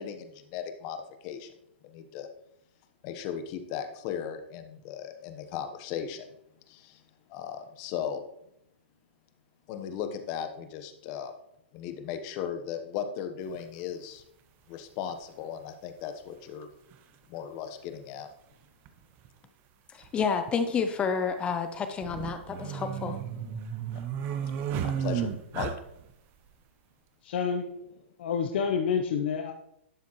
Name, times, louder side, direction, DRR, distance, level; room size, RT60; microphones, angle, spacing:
voice 1, 0.0-1.5 1.8-2.3 3.0-6.3 6.7-7.0 7.3-8.2 9.7-11.3 11.7-14.2 14.7-16.7 17.3-18.3 23.9-24.0 24.8-25.3 25.5-25.7, left 8 dB, 35° left, 8 dB, 1.1 m, -37 dB
sound 1, 13.5-13.6 15.1-15.2 16.6-16.7 16.9-17.0 18.9-19.0 19.2-19.3 20.0-20.5 21.9-26.1, right 8 dB, 30° right, 0.7 m, -33 dB
voice 2, 19.9-23.2, left 6 dB, 15° left, 8 dB, 0.5 m, -30 dB
voice 3, 27.2-27.7 28.2-29.5, left 6 dB, 60° left, 3 dB, 0.8 m, -28 dB
11.5 x 7.1 x 3.1 m, 0.77 s
hypercardioid pair, 145°, 6 cm